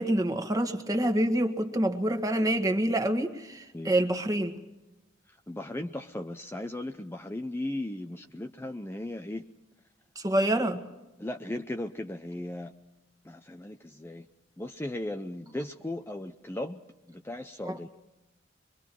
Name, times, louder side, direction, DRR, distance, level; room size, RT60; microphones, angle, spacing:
voice 1, 0.0-4.5 10.1-10.8 17.6-17.8, right 1 dB, 20° right, 5 dB, 1.6 m, -27 dB
voice 2, 5.3-9.4 11.2-12.7 13.2-14.3 14.6-16.8 17.1-17.9, left 1 dB, 15° left, 6 dB, 0.6 m, -37 dB
25.5 x 23.0 x 4.6 m, 1.0 s
head